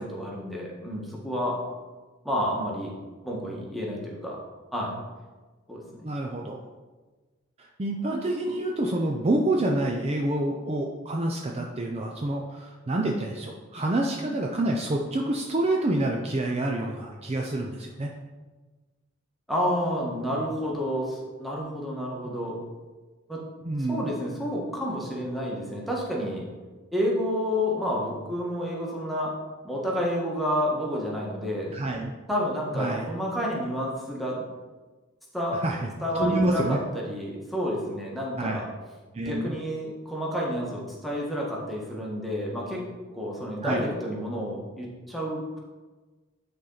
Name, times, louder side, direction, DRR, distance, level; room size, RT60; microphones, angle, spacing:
voice 1, 0.0-1.6 2.2-2.9 3.2-4.4 4.7-5.0 5.7-6.1 19.5-22.6 23.3-23.4 23.9-26.5 26.9-29.3 29.6-31.7 32.3-34.4 35.3-35.6 36.0-38.7 39.2-42.9 43.1-45.6, equal, ahead, -4 dB, 1.4 m, -30 dB
voice 2, 6.0-6.6 7.6-18.1 23.6-24.1 31.7-32.1 32.7-33.1 35.5-35.9 36.1-36.8 38.4-38.6 39.1-39.5 43.6-43.9, right 1 dB, 30° right, 1 dB, 0.5 m, -27 dB
9.4 x 4.3 x 3.9 m, 1.3 s
head